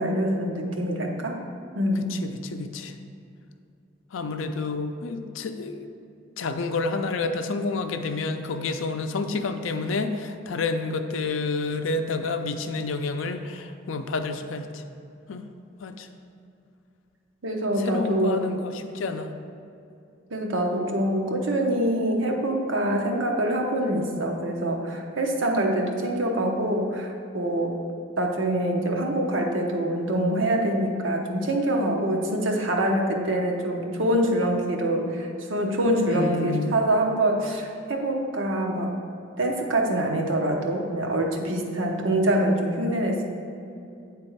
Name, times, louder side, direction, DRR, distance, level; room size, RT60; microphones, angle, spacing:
voice 1, 0.0-1.4 1.7-2.1 17.4-18.5 20.3-27.7 28.2-38.9 39.4-43.2, right 1 dB, 80° right, 1 dB, 0.8 m, -25 dB
voice 2, 2.1-2.9 4.1-5.9 6.4-14.8 15.3-15.5 15.8-16.1 17.8-19.3 36.1-36.8, left 3 dB, 80° left, 7 dB, 0.5 m, -29 dB
8.8 x 3.5 x 4.5 m, 2.6 s
head